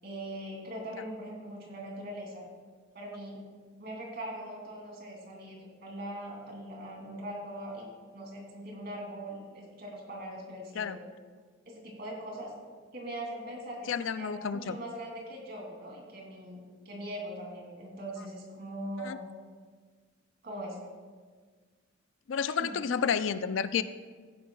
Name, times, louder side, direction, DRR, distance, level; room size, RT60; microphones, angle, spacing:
voice 1, 0.0-2.4 2.9-3.4 3.8-7.9 8.1-11.0 11.6-12.5 12.9-13.9 14.2-19.2 20.4-20.8 22.5-22.8, right 1 dB, 50° right, -2 dB, 2.8 m, -41 dB
voice 2, 13.9-14.8 19.0-19.2 22.3-23.8, left 7 dB, 70° left, 13 dB, 0.4 m, -30 dB
15.5 x 10.5 x 2.3 m, 1.5 s
head